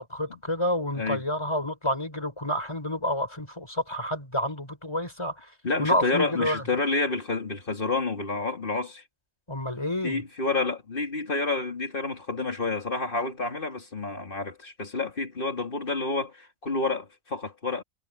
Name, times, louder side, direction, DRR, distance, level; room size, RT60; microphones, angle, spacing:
voice 1, 0.0-5.5 5.8-6.6 9.5-10.2, left 1 dB, 20° left, 5.2 m, -29 dB
voice 2, 5.6-9.0 10.0-17.8, left 3 dB, 40° left, 2.9 m, -29 dB
omnidirectional pair, 1.4 m